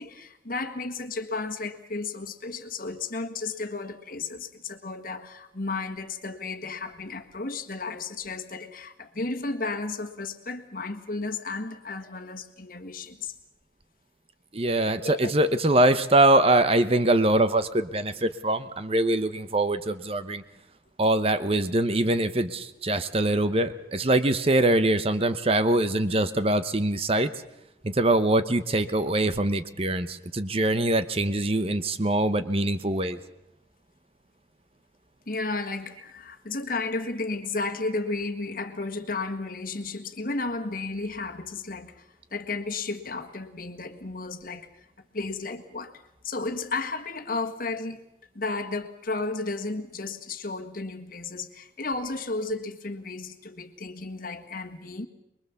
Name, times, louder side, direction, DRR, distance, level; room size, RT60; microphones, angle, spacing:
voice 1, 0.0-13.4 15.0-15.3 35.3-44.7 45.1-48.0 48.4-55.1, left 3 dB, 50° left, 6 dB, 1.6 m, -33 dB
voice 2, 14.5-20.4 21.0-27.3 27.8-33.2, right 1 dB, 35° right, 11 dB, 0.9 m, -23 dB
24.0 x 22.0 x 7.1 m, 0.86 s
head